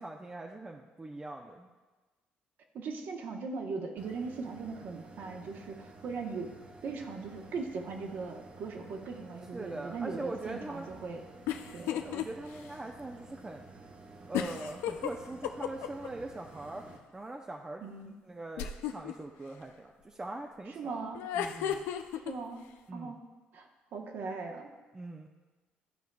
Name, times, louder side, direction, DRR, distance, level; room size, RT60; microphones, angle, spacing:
voice 1, 0.0-1.7 9.5-10.9 11.9-13.7 14.3-16.9 17.1-17.8 18.2-21.1 21.3-21.9 22.9-23.1 24.9-25.3, right 2 dB, 20° right, 2 dB, 0.5 m, -42 dB
voice 2, 2.7-6.5 6.8-11.2 11.7-11.9 17.8-18.2 20.7-21.2 22.2-23.2 23.5-24.7, right 4 dB, 65° right, 2 dB, 1.0 m, -39 dB
sound 1, 4.0-17.0, right 2 dB, 35° right, 0.9 m, -52 dB
sound 2, 11.5-12.3 12.7-12.8 14.3-16.1 18.6-19.1 21.1-22.3, left 10 dB, 90° left, 0.4 m, -33 dB
13.0 x 4.5 x 2.3 m, 1.3 s
cardioid pair, 85°, 4 cm